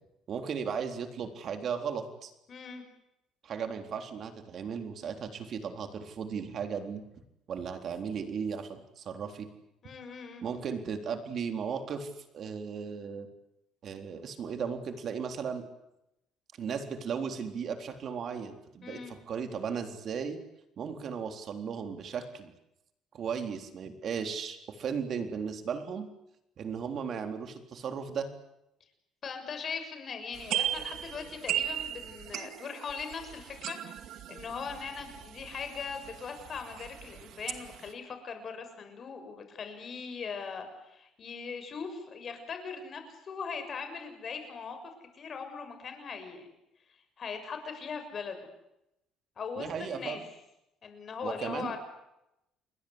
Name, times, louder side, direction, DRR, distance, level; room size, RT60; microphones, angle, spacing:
voice 1, 0.3-2.3 3.4-7.0 7.5-9.5 10.4-13.3 13.8-15.6 16.6-20.4 20.8-22.5 23.1-26.1 26.6-28.3 49.6-50.2 51.2-51.8, right 6 dB, 50° right, 6 dB, 3.9 m, -36 dB
voice 2, 2.5-2.8 9.8-10.4 11.3-11.4 18.8-19.1 29.2-44.8 45.1-46.5 47.2-48.5 49.4-50.2 50.8-51.8, left 5 dB, 40° left, 7 dB, 6.8 m, -40 dB
sound 1, 30.3-37.9, right 11 dB, 70° right, 2.3 m, -37 dB
29.5 x 21.5 x 8.2 m, 0.86 s
cardioid pair, 120°, 0 cm